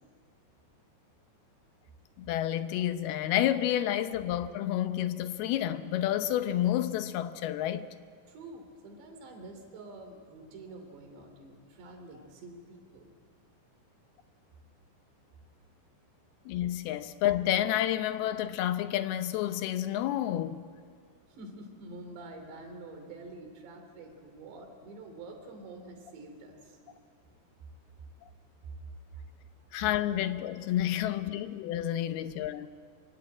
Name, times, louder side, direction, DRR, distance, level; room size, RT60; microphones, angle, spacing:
voice 1, 2.2-7.9 16.5-20.6 29.7-32.7, left 12 dB, 75° left, 2.6 m, -30 dB
voice 2, 8.3-13.1 21.3-27.2 29.2-29.3, right 2 dB, 80° right, 5.3 m, -47 dB
25.0 x 23.5 x 9.0 m
omnidirectional pair, 5.0 m